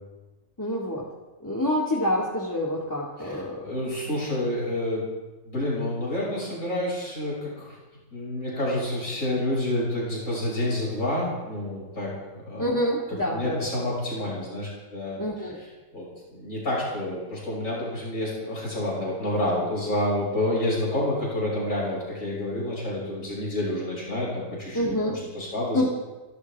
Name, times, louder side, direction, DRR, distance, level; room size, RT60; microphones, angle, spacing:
voice 1, 0.6-1.1 1.4-3.8 12.6-13.7 15.2-15.6 24.7-25.2 25.7-25.9, left 1 dB, 15° left, -3 dB, 2.1 m, -27 dB
voice 2, 3.2-5.0 5.4-7.8 8.1-12.7 13.3-15.2 15.9-25.9, left 1 dB, 70° left, -6 dB, 6.5 m, -29 dB
29.0 x 12.5 x 3.6 m, 1.2 s
omnidirectional pair, 1.4 m